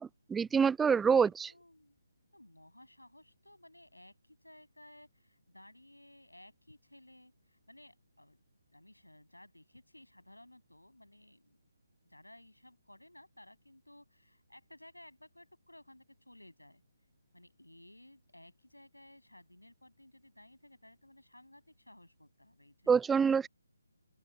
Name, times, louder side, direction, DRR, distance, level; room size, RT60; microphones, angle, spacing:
voice 1, 0.0-1.5 22.9-23.5, right 6 dB, 5° right, 0.4 m, -26 dB
voice 2, 1.1-2.0 2.3-8.4 8.7-11.6 12.0-16.8 17.3-23.2, left 1 dB, 85° left, 7.9 m, -58 dB
open air
figure-of-eight pair, 145°, 0 cm